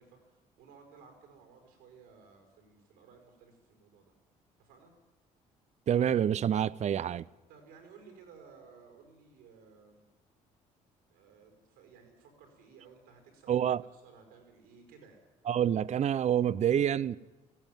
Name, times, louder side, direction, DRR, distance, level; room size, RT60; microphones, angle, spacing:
voice 1, 0.0-4.1 4.6-4.9 7.5-10.0 11.1-15.2, right 5 dB, 85° right, 5.1 m, -57 dB
voice 2, 5.9-7.3 13.5-13.8 15.5-17.2, right 9 dB, 45° right, 0.6 m, -27 dB
19.0 x 16.0 x 9.2 m
supercardioid pair, 60°, 16 cm